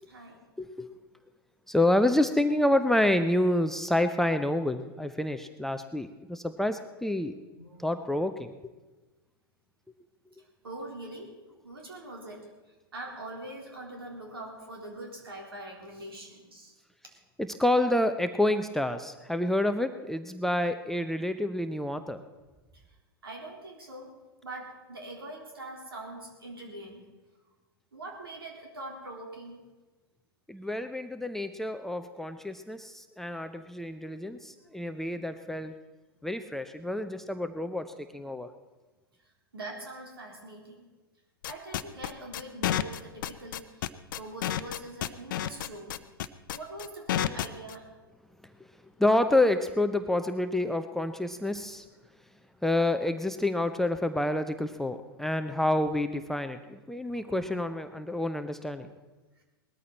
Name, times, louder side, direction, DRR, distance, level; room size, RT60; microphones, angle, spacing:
voice 1, 0.6-0.9 1.7-7.4 7.8-8.7 17.4-22.2 30.5-35.7 36.2-38.5 49.0-51.8 52.6-58.9, left 1 dB, 5° left, 8 dB, 0.7 m, -28 dB
voice 2, 7.6-8.2 10.6-11.3 11.6-12.4 12.9-16.7 23.2-24.1 24.4-27.0 27.9-29.6 39.5-40.9 41.5-43.9 44.2-45.9 46.5-47.9 57.1-57.8, right 1 dB, 75° right, 0 dB, 3.9 m, -43 dB
sound 1, 41.4-47.7, left 12 dB, 55° left, 0.7 m, -30 dB
20.0 x 13.5 x 4.2 m, 1.2 s
figure-of-eight pair, 100°, 13 cm